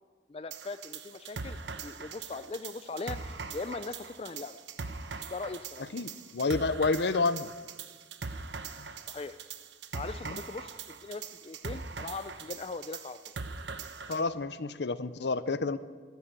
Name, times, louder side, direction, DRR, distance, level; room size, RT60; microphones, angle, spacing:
voice 1, 0.3-4.6 5.3-5.9 9.1-9.4 9.9-13.3, left 3 dB, 30° left, 12 dB, 0.4 m, -40 dB
sound 1, 0.5-14.2, right 4 dB, 80° right, 1.0 m, -41 dB
voice 2, 5.9-7.5 8.8-8.9 10.2-10.4 14.1-15.8, left 3 dB, 70° left, 15 dB, 0.7 m, -29 dB
15.0 x 10.5 x 8.9 m, 1.5 s
head